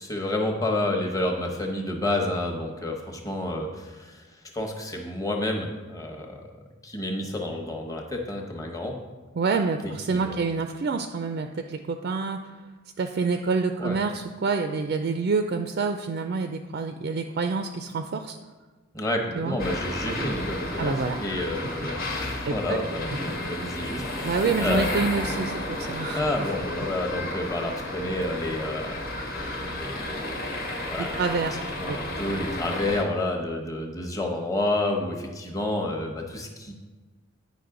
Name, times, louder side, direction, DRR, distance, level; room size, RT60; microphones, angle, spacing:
voice 1, 0.0-6.4 6.8-8.9 9.8-10.4 13.8-14.0 18.9-24.9 26.1-29.4 29.8-31.2 31.8-36.7, left 1 dB, 15° left, 2 dB, 0.9 m, -30 dB
voice 2, 9.4-12.5 13.0-18.4 19.4-19.6 20.8-21.2 21.6-22.0 22.5-22.8 24.2-26.2 31.0-31.6 31.9-32.0, right 4 dB, 50° right, 6 dB, 0.3 m, -27 dB
sound 1, 19.6-33.0, left 1 dB, 45° left, 1.2 m, -32 dB
9.4 x 5.1 x 3.8 m, 1.3 s
head